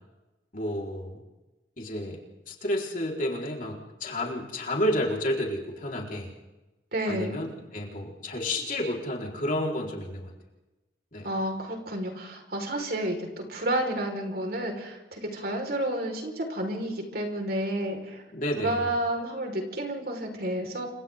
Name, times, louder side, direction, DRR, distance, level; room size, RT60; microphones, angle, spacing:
voice 1, 0.5-1.2 1.8-6.3 7.1-10.3 11.1-11.3 18.3-18.8, left 1 dB, 50° left, -1 dB, 4.6 m, -31 dB
voice 2, 6.9-7.4 11.2-18.2 18.6-20.9, right 1 dB, 55° right, 2 dB, 5.0 m, -30 dB
29.5 x 26.5 x 3.8 m, 1.1 s
head